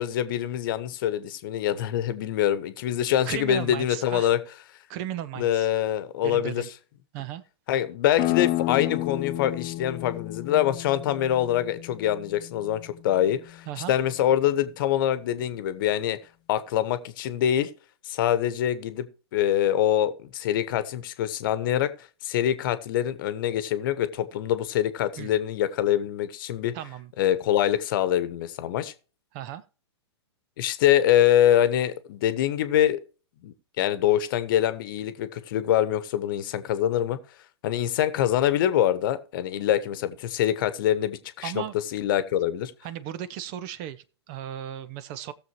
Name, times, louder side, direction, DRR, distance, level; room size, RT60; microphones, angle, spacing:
voice 1, 0.0-4.4 5.4-6.6 7.7-16.2 16.5-17.7 18.0-19.1 19.3-21.9 22.2-26.7 27.2-28.9 30.6-33.0 33.4-37.2 37.6-41.6 41.9-42.7, left 11 dB, 50° left, 1.1 m, -24 dB
voice 2, 3.3-4.3 4.9-5.7 6.2-6.7 7.1-7.4 13.7-13.9 25.2-25.3 26.7-27.1 29.3-29.6 41.4-41.8 42.8-45.3, right 11 dB, 40° right, 0.8 m, -35 dB
sound 1, 8.2-13.6, left 16 dB, 35° left, 0.7 m, -31 dB
18.0 x 6.9 x 3.1 m
figure-of-eight pair, 110°, 14 cm